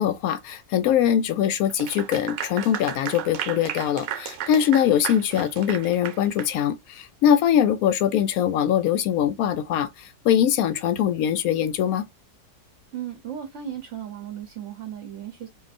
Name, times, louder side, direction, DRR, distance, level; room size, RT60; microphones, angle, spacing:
voice 1, 0.0-12.1, left 9 dB, 70° left, 0.9 m, -22 dB
Clapping / Applause, 1.7-6.5, right 10 dB, 90° right, 1.3 m, -34 dB
voice 2, 12.9-15.5, right 10 dB, 55° right, 0.9 m, -35 dB
4.6 x 2.6 x 2.5 m
omnidirectional pair, 1.9 m